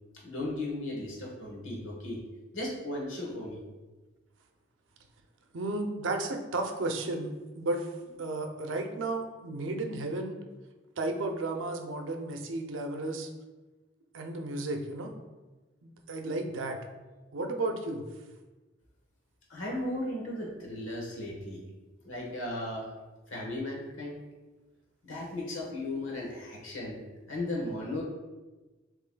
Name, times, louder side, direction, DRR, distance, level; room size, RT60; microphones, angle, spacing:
voice 1, 0.2-2.2 2.5-3.6 19.5-21.6 22.0-22.9 23.3-24.2 25.0-27.0 27.3-28.0, left 1 dB, 90° left, -1 dB, 1.2 m, -36 dB
voice 2, 5.5-7.9 8.2-10.4 11.0-13.3 14.1-15.1 15.8-16.8 17.3-18.0, right 2 dB, 80° right, 4 dB, 0.6 m, -33 dB
7.1 x 3.0 x 2.2 m, 1.2 s
head